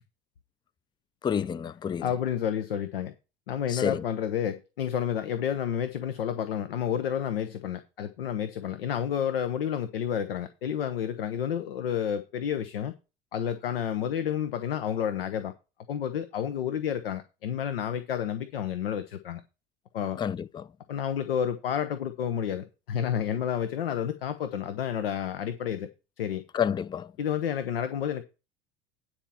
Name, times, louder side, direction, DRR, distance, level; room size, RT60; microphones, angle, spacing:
voice 1, 1.2-2.0 3.7-4.0 20.2-20.7 26.5-27.1, left 7 dB, 15° left, 0.4 m, -29 dB
voice 2, 2.0-3.1 3.5-12.9 13.3-15.5 15.9-19.4 19.9-20.2 20.9-25.9 26.2-26.4 27.2-28.2, left 9 dB, 80° left, 0.8 m, -30 dB
9.9 x 4.4 x 7.0 m
hypercardioid pair, 75°, 29 cm